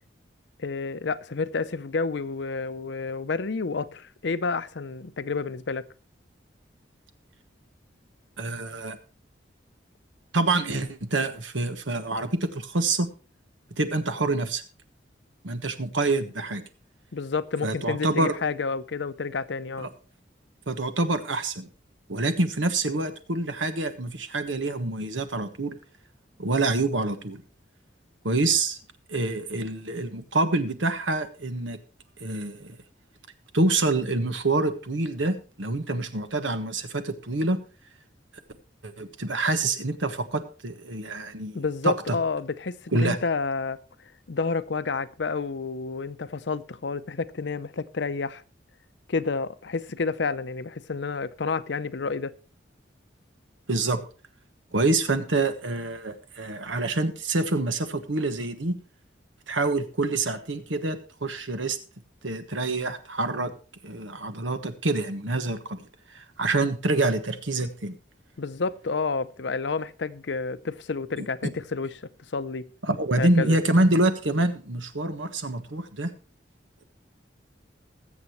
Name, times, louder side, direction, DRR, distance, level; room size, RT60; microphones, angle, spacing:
voice 1, 0.6-5.8 17.1-19.9 41.5-43.8 44.3-48.4 49.1-52.3 68.4-71.9 72.3-72.7 73.2-73.6, left 4 dB, 70° left, 0.6 m, -30 dB
voice 2, 8.4-9.0 10.3-13.1 13.8-14.6 15.4-16.6 17.6-18.3 19.8-19.9 20.7-21.7 22.1-25.8 26.4-27.4 28.2-28.8 29.1-31.8 32.2-32.8 33.5-37.6 38.8-42.2 42.9-43.2 53.7-54.0 54.7-58.8 59.5-61.8 62.2-63.5 63.8-65.8 66.1-67.9 71.2-71.3 72.8-76.1, right 2 dB, 90° right, 1.3 m, -26 dB
20.5 x 7.5 x 3.1 m
head